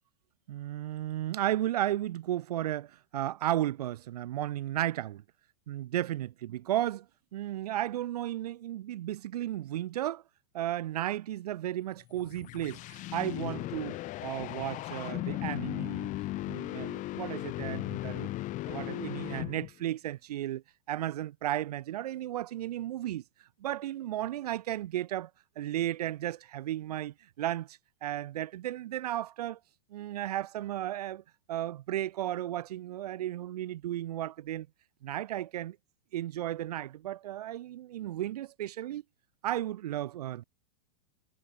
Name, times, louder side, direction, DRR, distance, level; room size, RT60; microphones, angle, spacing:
voice 1, 0.5-5.2 5.7-7.1 7.3-10.2 10.5-16.1 16.5-18.3 18.7-20.6 20.9-23.2 23.6-25.3 25.6-29.6 29.9-31.2 31.5-34.7 35.0-35.8 36.1-39.0 39.4-40.4, right 13 dB, 75° right, 7.5 m, -34 dB
sound 1, 12.0-19.9, left 17 dB, 40° left, 2.5 m, -37 dB
hypercardioid pair, 120°, 20 cm